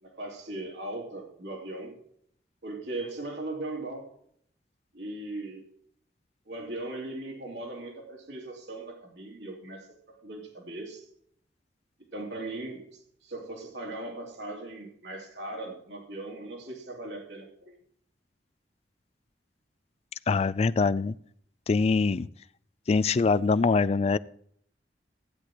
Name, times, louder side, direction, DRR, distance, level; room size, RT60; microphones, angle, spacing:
voice 1, 0.0-2.0 2.6-4.1 4.9-5.7 6.5-11.1 12.1-17.8, right 2 dB, 80° right, 0 dB, 2.8 m, -39 dB
voice 2, 20.3-21.1 21.7-22.3 22.9-24.2, left 4 dB, 35° left, 17 dB, 0.3 m, -23 dB
15.5 x 9.8 x 3.0 m, 0.66 s
head